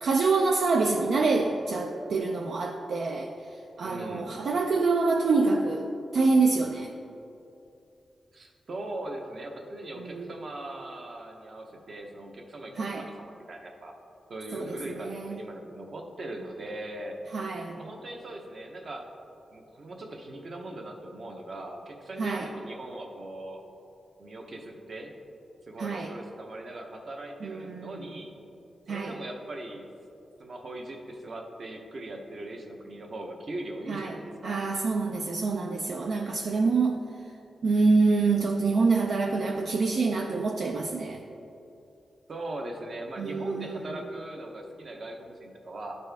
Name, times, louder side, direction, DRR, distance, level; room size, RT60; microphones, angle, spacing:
voice 1, 0.0-3.3 3.8-6.9 10.0-10.3 12.8-13.1 14.5-15.4 17.3-17.8 22.2-22.5 25.8-26.1 27.4-28.1 28.9-29.1 33.9-34.2 34.4-37.0 37.6-41.2 43.2-44.0, right 3 dB, 65° right, 2 dB, 0.4 m, -26 dB
voice 2, 3.8-4.3 8.3-13.9 14.3-17.2 17.8-19.1 19.5-23.6 24.2-25.1 25.7-28.3 28.9-29.9 30.4-34.5 42.3-46.0, right 1 dB, 45° right, 2 dB, 0.8 m, -40 dB
12.5 x 4.2 x 3.4 m, 2.7 s
wide cardioid pair, 140°, 0 cm